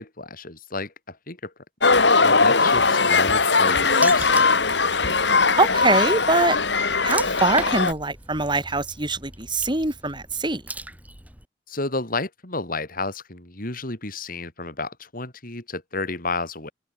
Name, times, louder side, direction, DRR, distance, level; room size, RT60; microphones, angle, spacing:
voice 1, 0.0-1.5 2.2-4.7 11.7-16.7, left 3 dB, 55° left, 5.0 m, -31 dB
sound 1, 1.8-7.9, left 4 dB, 90° left, 4.4 m, -19 dB
Water / Splash splatter, 4.0-11.5, right 1 dB, 10° right, 5.1 m, -38 dB
voice 2, 5.6-6.6 7.0-10.6, right 2 dB, 25° right, 7.1 m, -23 dB
open air
head